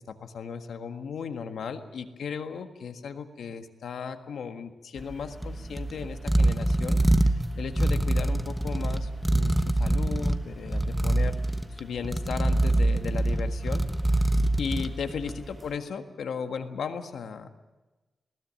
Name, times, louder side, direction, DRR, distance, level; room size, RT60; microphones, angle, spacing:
voice 1, 0.0-7.0 7.2-11.4 11.8-13.8 14.6-17.5, left 6 dB, 80° left, 7 dB, 1.6 m, -36 dB
sound 1, 5.0-15.6, right 1 dB, 5° right, 1.1 m, -25 dB
20.0 x 17.5 x 8.9 m, 1.2 s
wide cardioid pair, 130°, 0 cm